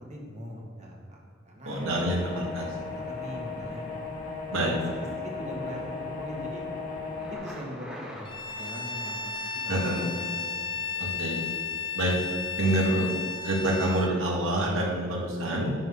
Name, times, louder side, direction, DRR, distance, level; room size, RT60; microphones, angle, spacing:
voice 1, 0.1-1.2 1.5-3.8 4.6-6.6 7.3-10.5 10.8-10.9 11.2-11.4, equal, 35° right, -2 dB, 1.8 m, -42 dB
sound 1, 1.7-7.4, left 4 dB, 45° left, 2.3 m, -36 dB
voice 2, 1.7-2.7 4.5-4.7 9.7-10.0 11.0-11.4 11.9-12.1 12.6-13.1 13.4-15.7, right 1 dB, 80° right, -2 dB, 1.9 m, -27 dB
Thunder, 7.1-11.0, equal, 5° right, 1.6 m, -46 dB
Bowed string instrument, 8.2-14.2, left 5 dB, 25° left, 0.6 m, -34 dB
10.5 x 4.0 x 6.5 m, 2.1 s
head